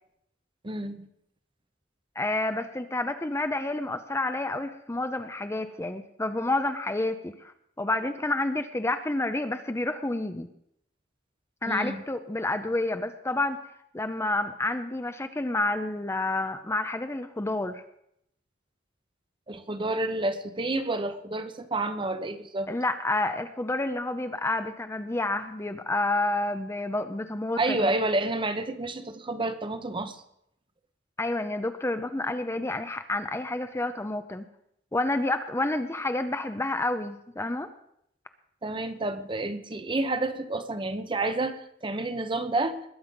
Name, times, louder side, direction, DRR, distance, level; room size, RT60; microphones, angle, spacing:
voice 1, 0.6-1.1 11.7-12.0 19.5-22.7 27.6-30.2 38.6-42.9, right 2 dB, 25° right, 10 dB, 0.9 m, -29 dB
voice 2, 2.2-7.5 7.8-10.5 11.6-13.6 13.9-17.8 22.7-27.9 31.2-34.4 34.9-37.7, left 2 dB, 15° left, 9 dB, 0.6 m, -29 dB
21.0 x 7.7 x 5.3 m, 0.75 s
head